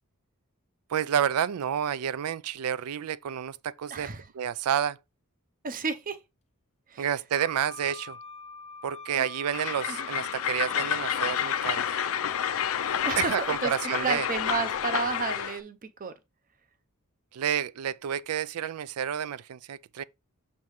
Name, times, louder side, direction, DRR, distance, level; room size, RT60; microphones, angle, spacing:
voice 1, 0.9-5.0 7.0-8.2 8.8-11.9 13.2-14.3 17.3-20.0, right 9 dB, 80° right, 0.4 m, -30 dB
voice 2, 3.9-4.3 5.6-6.2 6.9-7.1 9.1-9.3 9.9-10.1 13.0-16.1, right 4 dB, 40° right, 0.7 m, -32 dB
Wind instrument woodwind instrument, 7.4-14.1, left 4 dB, 30° left, 0.7 m, -44 dB
Train, 9.5-15.6, left 9 dB, 65° left, 0.5 m, -29 dB
6.4 x 5.4 x 3.1 m
head